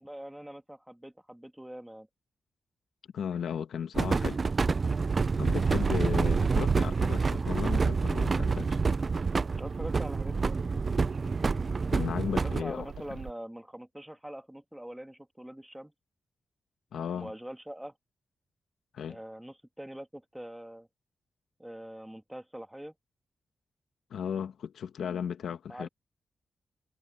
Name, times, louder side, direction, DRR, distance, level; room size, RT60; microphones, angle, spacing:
voice 1, 0.0-2.1 5.9-6.2 9.6-10.6 12.4-15.9 17.1-17.9 19.1-20.9 21.6-22.9 25.7-25.9, right 1 dB, 5° right, 1.9 m, -43 dB
voice 2, 3.1-4.4 5.4-8.8 11.9-12.9 16.9-17.3 18.9-19.2 24.1-25.9, left 8 dB, 90° left, 1.3 m, -35 dB
sound 1, 3.9-12.6, right 4 dB, 35° right, 0.3 m, -28 dB
sound 2, 5.1-13.3, right 7 dB, 55° right, 0.7 m, -37 dB
wide cardioid pair, 150°, 0 cm